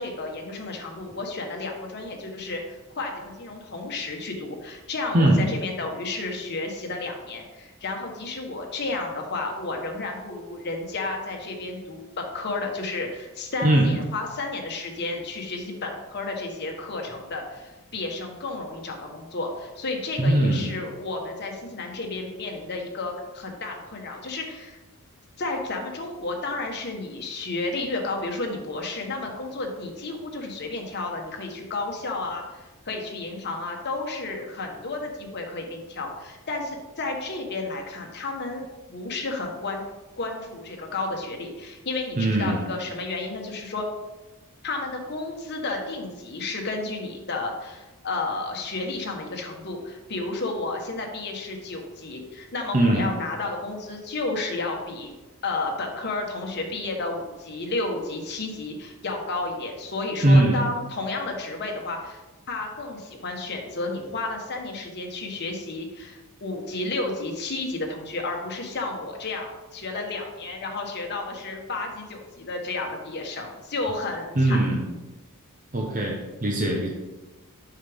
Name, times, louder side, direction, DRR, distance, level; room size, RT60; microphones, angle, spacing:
voice 1, 0.0-24.8 25.4-38.6 38.9-39.8 40.2-43.9 44.6-55.1 55.4-62.2 62.5-74.6, left 3 dB, 50° left, 1 dB, 1.2 m, -32 dB
voice 2, 13.6-13.9 20.2-20.7 42.2-42.6 52.7-53.1 60.2-60.6 74.4-74.9 75.7-76.9, right 1 dB, 35° right, 0 dB, 0.9 m, -20 dB
7.2 x 5.8 x 3.5 m, 1.1 s
head